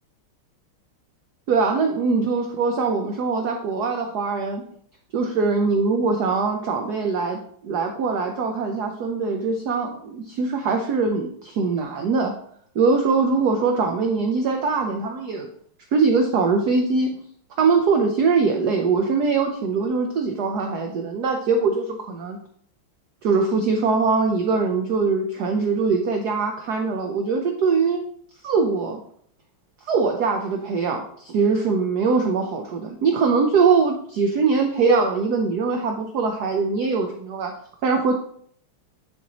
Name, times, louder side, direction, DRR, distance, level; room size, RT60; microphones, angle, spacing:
voice 1, 1.5-4.6 5.1-12.3 12.7-15.5 15.9-17.1 17.6-22.4 23.2-28.0 28.4-29.0 29.9-37.5 37.8-38.1, right 4 dB, 65° right, 3 dB, 1.1 m, -22 dB
10.0 x 4.4 x 2.9 m, 0.62 s
omnidirectional pair, 2.3 m